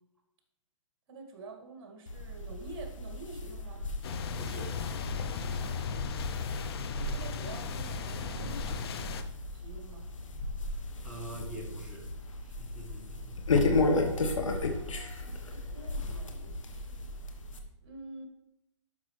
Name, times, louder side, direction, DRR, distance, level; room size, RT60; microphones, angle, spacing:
voice 1, 1.1-3.9 6.9-9.1 9.5-10.1 13.9-17.1 17.8-18.2, right 2 dB, 50° right, 2 dB, 2.2 m, -48 dB
sound 1, 2.1-17.6, left 2 dB, 80° left, 1.3 m, -34 dB
sound 2, 4.0-9.2, left 6 dB, 50° left, 0.7 m, -36 dB
voice 2, 4.4-4.8 11.0-12.1 12.4-13.8, right 1 dB, 5° right, -4 dB, 1.4 m, -46 dB
11.5 x 5.5 x 3.3 m, 0.87 s
hypercardioid pair, 145°, 16 cm